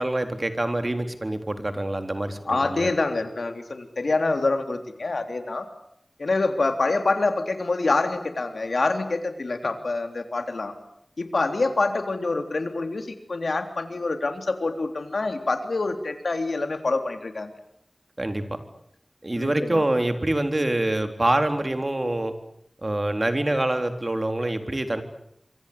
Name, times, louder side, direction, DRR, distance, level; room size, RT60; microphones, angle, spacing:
voice 1, 0.0-2.9 18.2-18.6 19.2-22.3 22.8-25.0, right 1 dB, 40° right, 7 dB, 3.8 m, -25 dB
voice 2, 2.4-5.6 6.2-10.7 11.2-17.5 19.4-19.8, left 3 dB, 90° left, 7 dB, 3.4 m, -26 dB
26.5 x 25.0 x 8.6 m, 0.72 s
wide cardioid pair, 50°, 0 cm